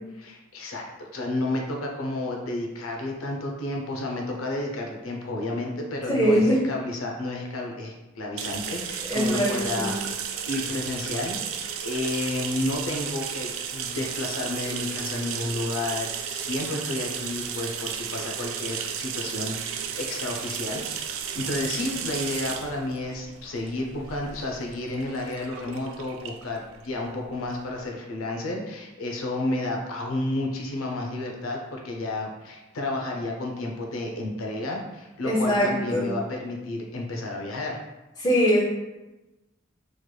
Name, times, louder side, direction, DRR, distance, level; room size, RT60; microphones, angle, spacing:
voice 1, 0.2-37.8, left 2 dB, 90° left, 1 dB, 0.5 m, -31 dB
voice 2, 6.1-6.6 9.1-9.9 35.2-36.1 38.2-38.6, equal, 20° left, -4 dB, 0.7 m, -22 dB
sound 1, 8.4-27.8, right 7 dB, 80° right, 0.3 m, -34 dB
3.1 x 3.0 x 2.2 m, 1.0 s
head